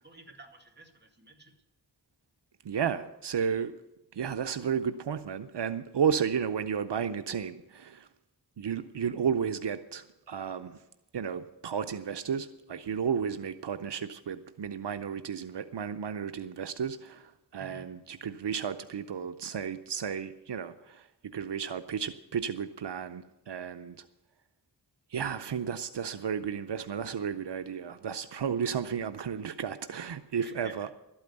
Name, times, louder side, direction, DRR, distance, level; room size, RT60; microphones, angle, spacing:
voice 1, 0.0-1.5 17.6-17.9 30.4-30.9, right 1 dB, 25° right, 3 dB, 2.4 m, -51 dB
voice 2, 2.6-3.7 4.1-8.1 8.6-10.8 11.1-21.1 21.3-24.1 25.1-30.9, right 7 dB, 85° right, 10 dB, 0.6 m, -33 dB
12.5 x 8.8 x 8.0 m, 0.96 s
wide cardioid pair, 50°, 41 cm